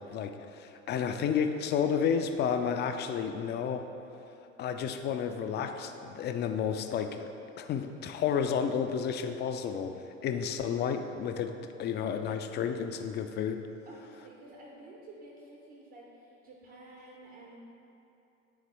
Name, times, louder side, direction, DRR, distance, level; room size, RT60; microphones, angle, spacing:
voice 1, 0.0-3.9 4.6-7.3 7.6-9.9 10.2-13.6, left 7 dB, 30° left, 7 dB, 0.4 m, -31 dB
voice 2, 13.9-17.6, right 2 dB, 55° right, -4 dB, 1.1 m, -51 dB
9.3 x 3.6 x 3.4 m, 2.9 s
figure-of-eight pair, 60°, 39 cm